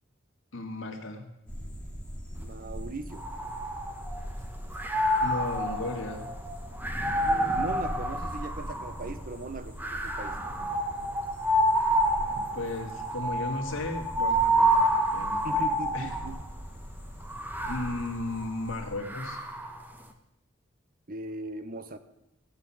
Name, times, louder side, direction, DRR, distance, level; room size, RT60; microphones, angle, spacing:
voice 1, 0.5-1.3 5.1-6.3 12.4-16.1 17.7-19.4, left 2 dB, 80° left, 2 dB, 2.3 m, -35 dB
sound 1, 1.5-18.9, equal, 5° left, 2.7 m, -41 dB
voice 2, 2.4-3.3 7.2-10.4 15.4-16.4 21.1-22.0, right 2 dB, 45° right, 10 dB, 1.0 m, -39 dB
night wind, 3.1-4.3 4.7-9.1 9.8-16.5 17.2-19.8, right 1 dB, 10° right, 1.2 m, -28 dB
16.0 x 6.1 x 8.6 m, 0.88 s
head